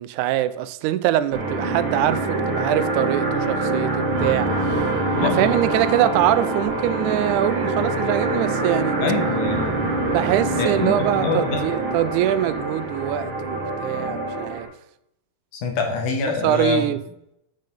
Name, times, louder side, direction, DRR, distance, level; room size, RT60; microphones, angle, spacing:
voice 1, 0.0-4.8 5.2-9.0 10.1-14.7 16.2-17.0, right 12 dB, 85° right, 2.0 m, -23 dB
sound 1, 1.3-14.6, right 2 dB, 45° right, 2.4 m, -25 dB
voice 2, 5.1-5.6 9.0-9.9 10.6-11.6 15.5-16.9, left 4 dB, 85° left, 2.9 m, -25 dB
7.5 x 6.4 x 5.2 m
omnidirectional pair, 3.4 m